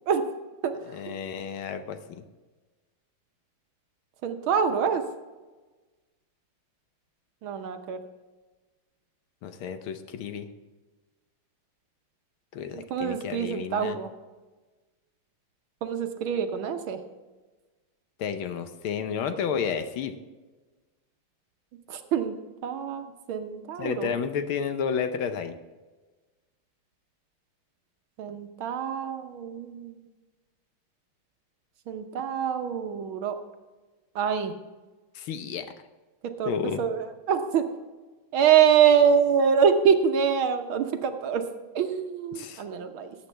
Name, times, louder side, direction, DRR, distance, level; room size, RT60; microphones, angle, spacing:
voice 1, 0.8-2.2 9.4-10.5 12.5-14.0 18.2-20.2 23.8-25.6 35.1-35.7 36.4-36.9 42.3-42.6, left 7 dB, 75° left, 9 dB, 1.6 m, -31 dB
voice 2, 4.2-5.0 7.4-8.0 12.9-14.1 15.8-17.0 21.9-22.4 22.6-24.1 28.2-30.0 31.9-33.4 34.1-34.5 36.4-36.5 36.8-37.6 38.3-41.4 41.7-43.1, right 7 dB, 70° right, 6 dB, 1.7 m, -25 dB
17.5 x 8.3 x 3.3 m, 1.3 s
omnidirectional pair, 2.4 m